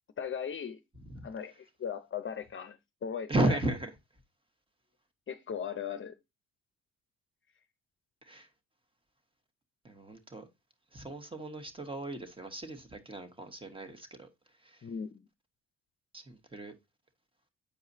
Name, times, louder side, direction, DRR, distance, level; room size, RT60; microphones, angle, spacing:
voice 1, 0.2-0.8 1.2-3.6 5.3-6.1 14.8-15.2, left 7 dB, 40° left, 0.8 m, -38 dB
voice 2, 3.3-3.9 8.2-8.5 9.8-10.5 10.9-14.3 14.6-14.8 16.1-16.7, right 2 dB, 15° right, 1.5 m, -35 dB
8.4 x 4.7 x 2.7 m
cardioid pair, 90°, 30 cm